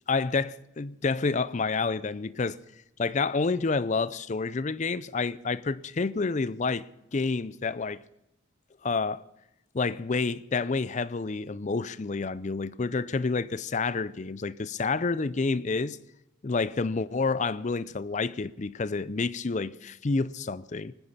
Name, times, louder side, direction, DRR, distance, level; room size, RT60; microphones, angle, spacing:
voice 1, 0.1-2.6 3.0-8.0 8.8-9.2 9.7-16.0 16.4-20.9, left 4 dB, 35° left, 0.5 m, -29 dB
19.5 x 9.8 x 7.2 m
head